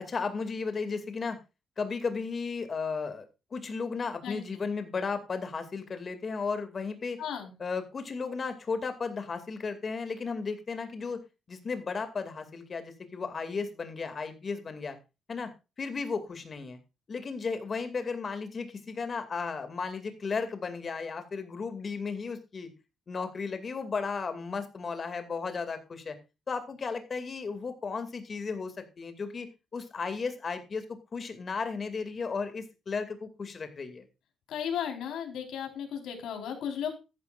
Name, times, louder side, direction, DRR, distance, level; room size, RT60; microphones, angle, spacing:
voice 1, 0.0-1.4 1.8-3.2 3.5-7.2 7.6-11.2 11.5-15.0 15.3-15.5 15.8-16.8 17.1-22.7 23.1-26.2 26.5-30.8 31.1-34.0, left 4 dB, 30° left, 8 dB, 2.4 m, -34 dB
voice 2, 7.2-7.5 34.5-36.9, left 8 dB, 85° left, 4 dB, 4.3 m, -35 dB
14.0 x 12.0 x 2.5 m, 0.28 s
cardioid pair, 160°, 0 cm